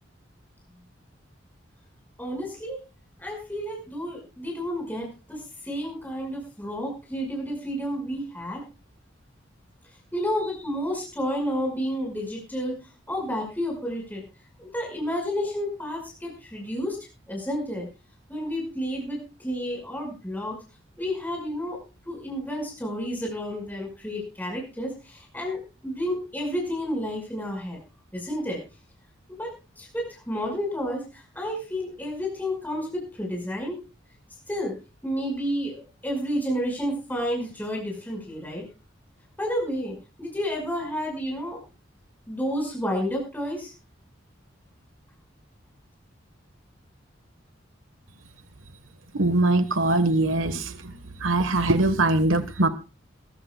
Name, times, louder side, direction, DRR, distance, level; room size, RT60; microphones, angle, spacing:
voice 1, 2.2-2.8 3.2-8.6 10.1-12.8 13.1-14.2 14.6-17.0 17.3-17.9 18.3-20.6 21.0-21.8 22.1-27.8 28.1-28.6 29.3-33.8 34.5-34.8 35.0-38.6 39.4-41.6 42.3-43.7, equal, 10° left, 0 dB, 5.4 m, -31 dB
voice 2, 49.1-50.9 51.2-52.7, right 2 dB, 90° right, 10 dB, 1.4 m, -22 dB
22.0 x 14.5 x 2.3 m, 0.32 s
head